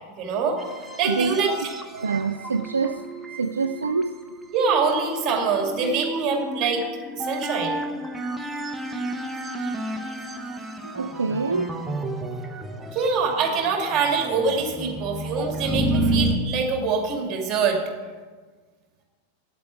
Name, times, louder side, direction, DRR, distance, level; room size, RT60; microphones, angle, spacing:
voice 1, 0.2-0.6 1.0-1.5 4.5-6.8 7.2-7.8 12.9-17.8, right 5 dB, 30° right, 2 dB, 2.3 m, -24 dB
sound 1, 0.6-16.4, right 1 dB, 5° right, 1.0 m, -31 dB
voice 2, 1.0-1.6 1.9-3.0 3.4-4.2 10.8-11.8, right 4 dB, 75° right, 10 dB, 0.3 m, -26 dB
8.7 x 8.3 x 7.6 m, 1.4 s
figure-of-eight pair, 90°, 0 cm